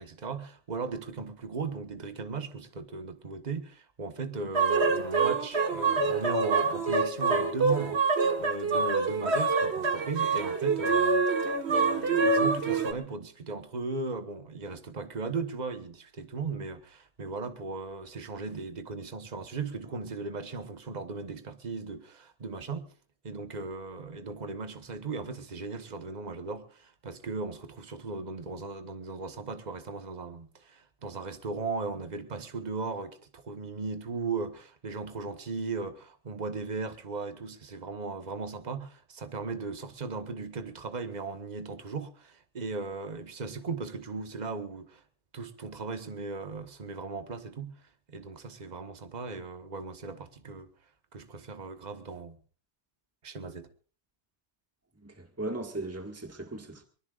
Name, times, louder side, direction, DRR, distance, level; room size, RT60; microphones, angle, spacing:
voice 1, 0.0-8.0 8.4-22.9 23.2-45.0 45.3-47.8 48.1-50.7 51.1-52.4 53.2-53.7, right 4 dB, 40° right, 1.3 m, -37 dB
sound 1, 4.5-12.9, right 4 dB, 65° right, 1.7 m, -26 dB
voice 2, 55.0-56.8, right 2 dB, 15° right, 1.8 m, -37 dB
24.0 x 20.5 x 2.5 m
omnidirectional pair, 1.2 m